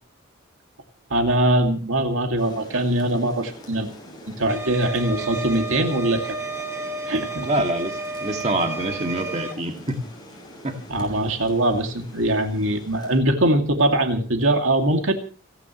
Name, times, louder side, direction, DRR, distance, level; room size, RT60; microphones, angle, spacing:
voice 1, 1.1-3.9 4.4-6.4 7.1-7.5 10.9-15.1, right 1 dB, 70° right, 4 dB, 2.4 m, -22 dB
Rain, 2.4-13.2, equal, 20° left, 7.3 m, -44 dB
sound 1, 4.5-9.5, right 3 dB, 15° right, 1.5 m, -32 dB
voice 2, 7.4-10.0 10.6-11.2, right 1 dB, 30° right, 3 dB, 2.3 m, -26 dB
30.0 x 10.5 x 3.1 m, 0.39 s
head